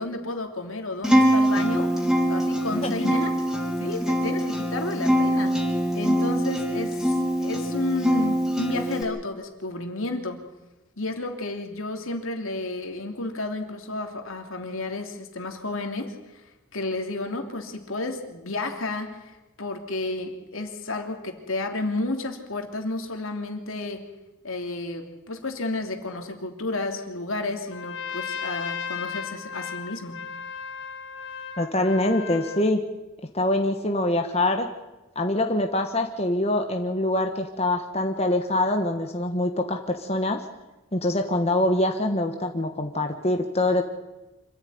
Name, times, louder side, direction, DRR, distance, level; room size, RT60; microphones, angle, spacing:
voice 1, 0.0-3.4 3.8-5.5 5.9-7.0 7.4-10.4 11.0-16.4 16.7-24.0 24.4-30.1, left 2 dB, 75° left, 4 dB, 3.0 m, -31 dB
Acoustic guitar, 1.0-9.0, equal, ahead, 3.5 m, -23 dB
voice 2, 2.8-3.1 31.6-32.8 33.3-34.7 35.1-40.4 40.9-43.8, left 1 dB, 30° left, 4 dB, 1.5 m, -24 dB
Trumpet, 27.7-32.7, left 7 dB, 60° left, 1.9 m, -35 dB
26.0 x 14.5 x 9.6 m, 1.0 s
head